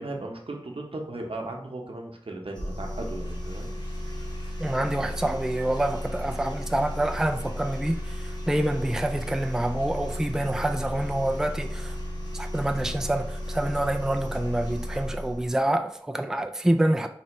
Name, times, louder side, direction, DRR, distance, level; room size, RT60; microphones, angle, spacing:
voice 1, 0.0-3.7, right 2 dB, 80° right, 1 dB, 0.8 m, -36 dB
sound 1, 2.5-15.5, equal, 50° left, 1.1 m, -34 dB
voice 2, 4.6-8.0 8.5-11.9 12.3-17.1, right 1 dB, 5° right, 5 dB, 0.3 m, -27 dB
4.3 x 3.3 x 2.9 m, 0.66 s
wide cardioid pair, 50°, 9 cm